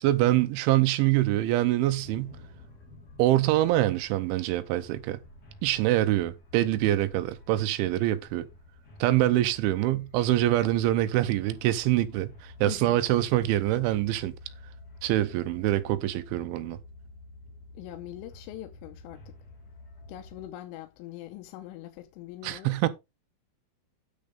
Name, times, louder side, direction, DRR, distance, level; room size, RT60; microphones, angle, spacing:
voice 1, 0.0-2.3 3.2-5.2 5.6-8.5 9.0-14.3 15.0-16.8 22.4-22.9, right 15 dB, 80° right, 3.0 m, -25 dB
sound 1, 1.9-20.5, left 2 dB, 35° left, 1.6 m, -50 dB
voice 2, 12.7-13.0 17.7-19.3 20.1-22.7, left 14 dB, 85° left, 3.3 m, -42 dB
9.7 x 5.1 x 5.2 m
omnidirectional pair, 5.9 m